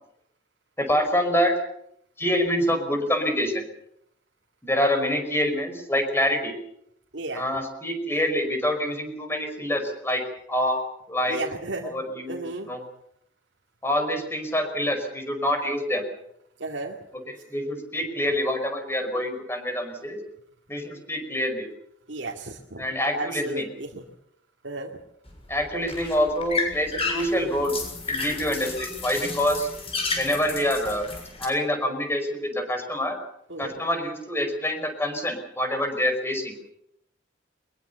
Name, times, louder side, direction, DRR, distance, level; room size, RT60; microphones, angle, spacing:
voice 1, 0.8-1.5 2.2-3.6 4.6-6.5 7.3-10.2 10.5-10.8 11.1-11.4 11.8-12.8 13.8-16.0 17.5-20.2 20.7-21.7 22.8-23.7 25.5-27.7 28.1-29.7 30.2-31.1 31.4-33.2 33.6-36.6, equal, 15° left, 6 dB, 5.2 m, -26 dB
voice 2, 7.1-7.4 11.3-11.9 12.3-12.7 16.6-17.0 22.1-22.9 23.1-24.0 24.6-24.9 33.5-33.7, right 2 dB, 90° right, 0 dB, 2.4 m, -33 dB
sound 1, 25.3-31.5, left 3 dB, 35° left, 6.9 m, -32 dB
23.0 x 21.5 x 7.0 m, 0.75 s
head